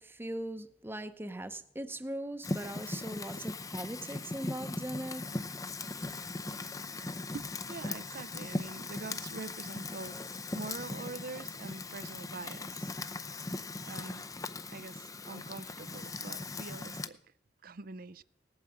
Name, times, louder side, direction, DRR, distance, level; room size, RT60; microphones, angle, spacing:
voice 1, 0.0-5.3, right 1 dB, 10° right, 0.8 m, -40 dB
Fire, 2.4-17.1, left 3 dB, 20° left, 0.6 m, -39 dB
voice 2, 7.3-10.2 10.5-12.9 13.9-14.2 14.7-17.2 17.6-18.2, right 3 dB, 50° right, 0.6 m, -44 dB
19.0 x 8.7 x 7.9 m
head